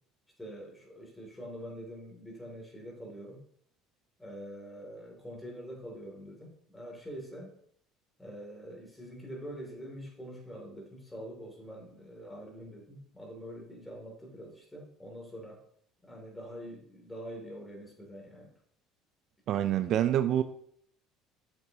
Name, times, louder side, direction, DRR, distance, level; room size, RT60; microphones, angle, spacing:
voice 1, 0.4-3.4 4.2-7.6 8.2-15.6 16.0-18.5, equal, 10° left, 2.8 m, -45 dB
voice 2, 19.5-20.4, right 11 dB, 60° right, 0.5 m, -26 dB
7.9 x 6.8 x 2.9 m
hypercardioid pair, 80°, 0 cm